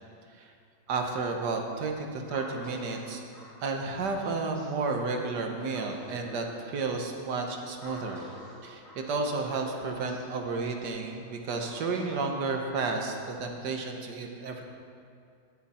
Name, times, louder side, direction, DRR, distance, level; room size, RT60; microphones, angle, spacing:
voice 1, 0.9-3.2 3.6-8.2 8.6-14.6, right 3 dB, 65° right, 3 dB, 1.7 m, -32 dB
sound 1, 2.3-13.3, left 1 dB, 75° left, 4.3 m, -49 dB
18.0 x 6.6 x 4.3 m, 2.3 s
omnidirectional pair, 2.0 m